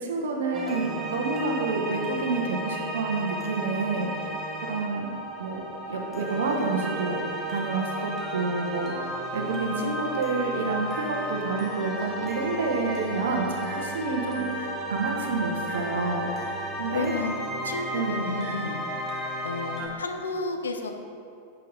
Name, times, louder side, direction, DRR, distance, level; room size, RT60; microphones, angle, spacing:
voice 1, 0.0-4.3 4.6-5.1 5.4-7.3 7.5-16.3 16.8-17.1 17.9-18.2, right 3 dB, 60° right, 2 dB, 1.0 m, -29 dB
sound 1, 0.5-19.9, right 1 dB, 10° right, 1.3 m, -33 dB
voice 2, 16.9-17.4 17.6-18.8 19.4-20.9, left 3 dB, 70° left, 5 dB, 0.6 m, -31 dB
8.5 x 5.9 x 3.8 m, 2.4 s
figure-of-eight pair, 90°, 0 cm